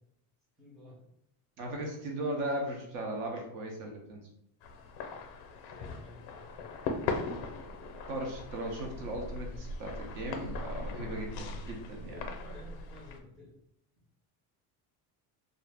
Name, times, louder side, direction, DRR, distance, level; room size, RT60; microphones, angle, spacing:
voice 1, 0.6-1.0 5.7-6.9 12.0-13.5, left 1 dB, ahead, -7 dB, 0.4 m, -52 dB
voice 2, 1.6-4.2 8.1-12.2, right 1 dB, 50° right, 1 dB, 0.7 m, -37 dB
sound 1, 4.6-13.2, left 3 dB, 85° left, 0.6 m, -39 dB
2.4 x 2.0 x 3.3 m, 0.77 s
cardioid pair, 175°, 41 cm